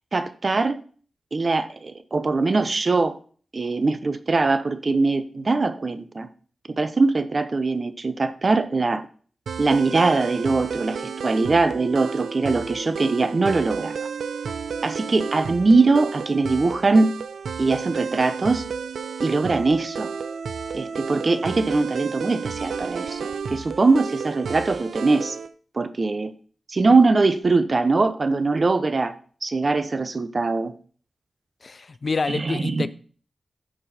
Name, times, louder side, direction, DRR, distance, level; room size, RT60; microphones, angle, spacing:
voice 1, 0.1-0.8 1.3-3.2 3.5-6.3 6.7-9.0 9.6-13.9 14.8-17.1 17.6-18.6 19.2-20.1 20.7-25.4 25.8-26.3 26.7-29.1 29.4-30.7 32.3-32.9, right 3 dB, 45° right, 11 dB, 0.9 m, -21 dB
sound 1, 9.5-25.5, right 6 dB, 85° right, 0.5 m, -32 dB
voice 2, 31.6-32.9, left 4 dB, 50° left, 15 dB, 0.5 m, -27 dB
13.5 x 4.6 x 4.3 m, 0.42 s
wide cardioid pair, 80°, 0 cm